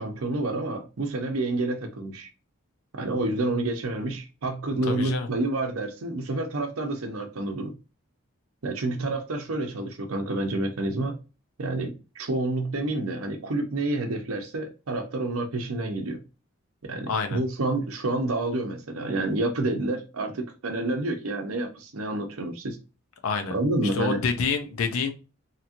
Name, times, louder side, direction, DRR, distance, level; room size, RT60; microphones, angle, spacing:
voice 1, 0.0-2.3 2.9-7.7 8.6-11.2 11.6-16.2 16.8-22.8 23.5-24.2, right 2 dB, 75° right, 4 dB, 0.7 m, -29 dB
voice 2, 4.8-5.3 17.1-17.4 23.2-23.6 23.9-25.1, left 5 dB, 75° left, 6 dB, 0.5 m, -27 dB
2.9 x 2.5 x 2.7 m, 0.31 s
head